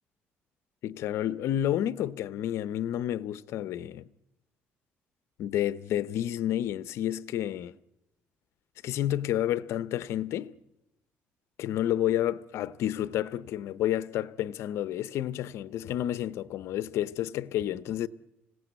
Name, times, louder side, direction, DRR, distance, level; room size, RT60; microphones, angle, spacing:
voice 1, 0.8-4.0 5.4-7.7 8.8-10.6 11.6-18.1, left 12 dB, 70° left, 0.8 m, -30 dB
26.0 x 17.0 x 8.2 m
cardioid pair, 105°, 5 cm